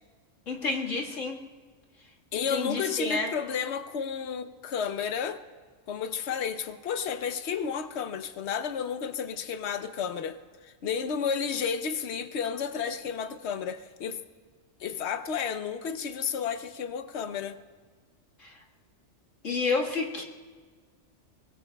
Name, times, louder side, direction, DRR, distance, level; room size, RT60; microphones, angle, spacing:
voice 1, 0.5-1.4 2.3-3.3 18.4-18.6 19.4-20.2, left 3 dB, 90° left, 2.1 m, -30 dB
voice 2, 2.3-5.4 5.9-14.2 14.8-17.6, left 7 dB, 65° left, 1.0 m, -32 dB
23.5 x 20.5 x 2.3 m
omnidirectional pair, 1.3 m